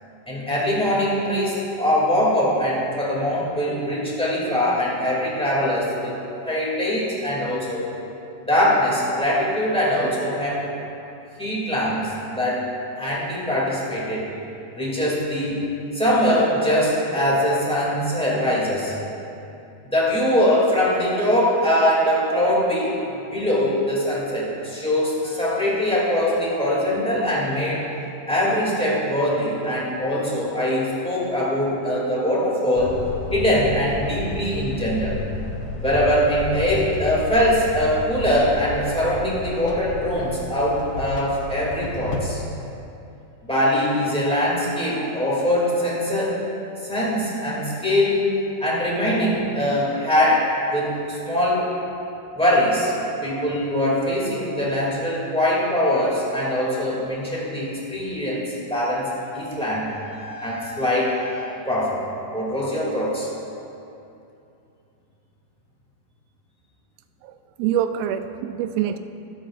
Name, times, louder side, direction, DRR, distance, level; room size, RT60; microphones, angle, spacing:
voice 1, 0.3-6.2 6.4-7.9 8.4-10.7 11.4-12.7 13.0-14.3 14.7-15.6 15.9-19.0 19.8-23.0 23.3-27.8 28.3-33.0 33.3-35.2 35.8-42.4 43.4-46.4 46.8-51.7 52.3-52.9 53.2-62.0 62.3-63.3, left 1 dB, 5° left, -7 dB, 1.1 m, -22 dB
sound 1, 32.8-42.2, left 2 dB, 70° left, 2.4 m, -32 dB
voice 2, 67.6-69.0, right 10 dB, 85° right, 9 dB, 2.2 m, -25 dB
24.0 x 8.4 x 2.5 m, 2.8 s
omnidirectional pair, 4.7 m